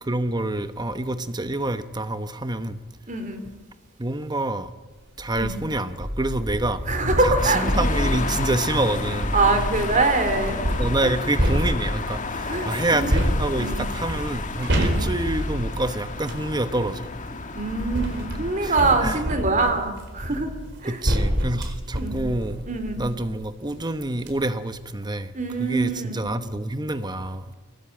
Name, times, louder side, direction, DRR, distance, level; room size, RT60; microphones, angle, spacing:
voice 1, 0.0-2.8 4.0-4.7 5.2-6.8 7.2-9.4 10.8-17.1 18.6-19.2 20.8-22.7 23.0-25.3 25.6-27.4, right 2 dB, 20° right, 10 dB, 1.0 m, -27 dB
voice 2, 3.1-3.4 5.4-5.5 6.9-7.7 9.3-10.6 11.0-11.1 12.5-13.2 13.6-13.8 14.7-15.0 17.5-20.5 20.8-21.0 22.0-22.2 22.7-23.0 25.3-26.2, right 3 dB, 40° right, 6 dB, 3.4 m, -24 dB
sound 1, 5.2-5.5 6.0-10.0 10.6-12.2 13.1-16.5 17.4-23.3 23.8-23.9 24.2-24.3, equal, 60° right, 4.5 m, -27 dB
sound 2, 7.4-19.1, left 3 dB, 40° left, 1.8 m, -31 dB
24.0 x 18.5 x 8.7 m, 1.1 s
head